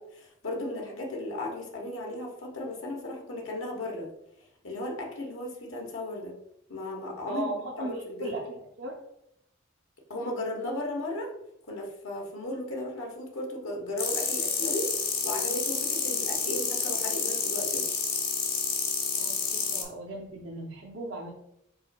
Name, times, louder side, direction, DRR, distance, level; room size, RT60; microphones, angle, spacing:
voice 1, 0.0-4.1 4.6-6.3 6.7-8.4 10.1-11.3 11.7-14.9 15.2-17.9, left 1 dB, 85° left, -1 dB, 1.1 m, -35 dB
voice 2, 7.3-8.4 8.8-8.9 19.2-21.3, right 2 dB, 65° right, -2 dB, 0.6 m, -37 dB
sound 1, 14.0-19.8, left 5 dB, 50° left, 1.0 m, -29 dB
5.4 x 4.1 x 2.2 m, 0.79 s
head